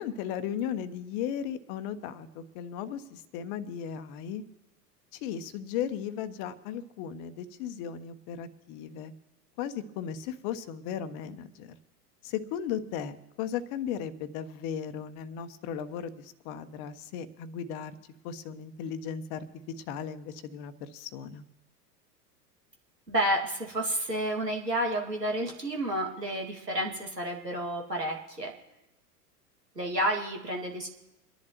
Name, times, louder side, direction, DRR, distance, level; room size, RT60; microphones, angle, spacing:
voice 1, 0.0-4.4 5.1-9.1 9.6-11.7 12.2-18.0 18.2-21.4, left 8 dB, 35° left, 11 dB, 0.9 m, -36 dB
voice 2, 23.1-28.5 29.8-30.9, right 1 dB, 90° right, 1 dB, 2.2 m, -30 dB
27.0 x 11.0 x 3.0 m, 0.99 s
figure-of-eight pair, 90°, 48 cm